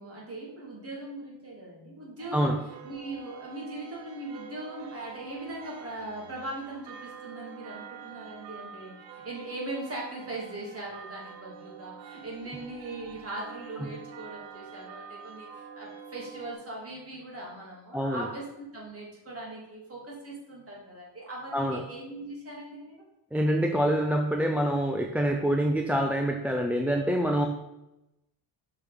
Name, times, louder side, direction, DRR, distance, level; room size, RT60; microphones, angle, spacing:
voice 1, 0.0-2.5 2.8-23.0, right 2 dB, 30° right, -3 dB, 3.0 m, -40 dB
sound 1, 2.2-16.5, right 7 dB, 70° right, 1.0 m, -46 dB
voice 2, 17.9-18.3 21.5-21.8 23.3-27.5, equal, 5° right, 3 dB, 0.5 m, -26 dB
6.2 x 5.3 x 5.3 m, 0.91 s
cardioid pair, 115°, 44 cm